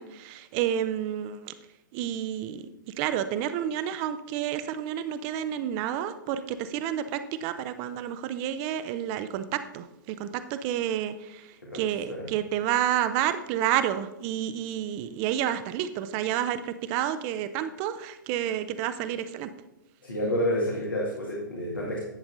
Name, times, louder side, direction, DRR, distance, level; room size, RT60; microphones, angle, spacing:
voice 1, 0.0-1.5 1.9-19.5, right 10 dB, 30° right, 11 dB, 0.5 m, -30 dB
voice 2, 20.0-22.0, equal, 85° left, -4 dB, 1.9 m, -29 dB
11.0 x 7.0 x 2.6 m, 0.91 s
figure-of-eight pair, 110°, 11 cm